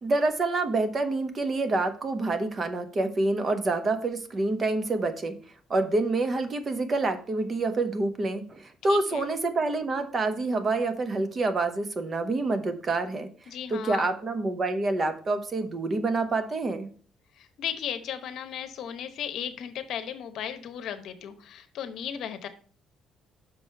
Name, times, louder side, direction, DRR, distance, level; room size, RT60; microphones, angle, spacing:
voice 1, 0.0-5.4 5.7-13.3 13.7-16.9, right 2 dB, 30° right, 9 dB, 0.9 m, -27 dB
voice 2, 8.9-9.3 13.5-14.1 17.4-22.5, left 9 dB, 65° left, 9 dB, 0.9 m, -36 dB
6.0 x 4.9 x 5.6 m, 0.43 s
cardioid pair, 135°, 0 cm